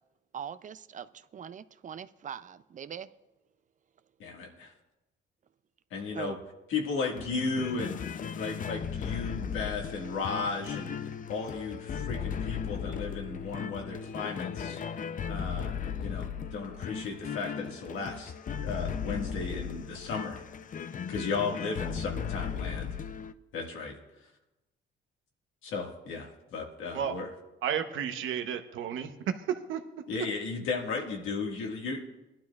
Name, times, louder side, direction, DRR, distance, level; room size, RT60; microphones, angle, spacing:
voice 1, 0.3-3.1 6.1-6.4, right 8 dB, 40° right, 14 dB, 0.4 m, -41 dB
voice 2, 4.2-4.7 5.9-6.4 6.7-11.0 11.3-14.8 15.3-15.7 16.0-18.3 18.6-20.4 21.1-22.9 23.5-24.0 25.6-27.3 30.1-32.0, left 4 dB, 85° left, 1 dB, 1.8 m, -35 dB
sound 1, 7.1-23.3, left 7 dB, 40° left, 0.5 m, -36 dB
voice 3, 27.6-29.1 29.5-29.8, right 8 dB, 80° right, 7 dB, 0.9 m, -32 dB
19.5 x 12.0 x 2.4 m, 1.0 s
cardioid pair, 90°, 20 cm